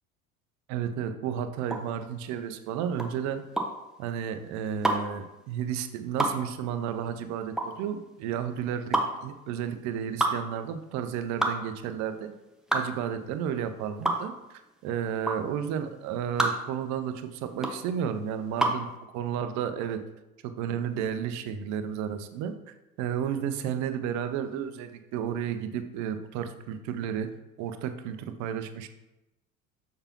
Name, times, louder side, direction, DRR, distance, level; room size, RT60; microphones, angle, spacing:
voice 1, 0.7-3.4 4.0-12.3 12.7-20.0 20.4-22.5 23.0-27.3 27.6-28.9, right 8 dB, 40° right, 9 dB, 0.7 m, -32 dB
sound 1, 1.6-18.9, right 1 dB, ahead, 0.7 m, -30 dB
6.7 x 5.7 x 2.9 m, 0.96 s
figure-of-eight pair, 70°, 42 cm